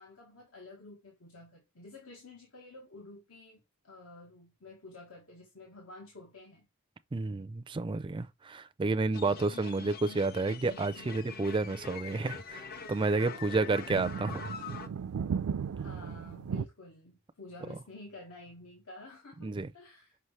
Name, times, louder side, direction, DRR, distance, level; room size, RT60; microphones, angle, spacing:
voice 1, 0.0-6.7 13.2-14.0 15.7-20.2, left 2 dB, 75° left, 1.4 m, -50 dB
voice 2, 7.1-14.4 19.4-19.7, right 3 dB, 25° right, 0.4 m, -30 dB
sound 1, 9.1-14.9, left 5 dB, 45° left, 0.7 m, -44 dB
sound 2, 12.9-13.1 13.8-16.6, right 6 dB, 90° right, 0.4 m, -36 dB
5.6 x 5.4 x 3.2 m
head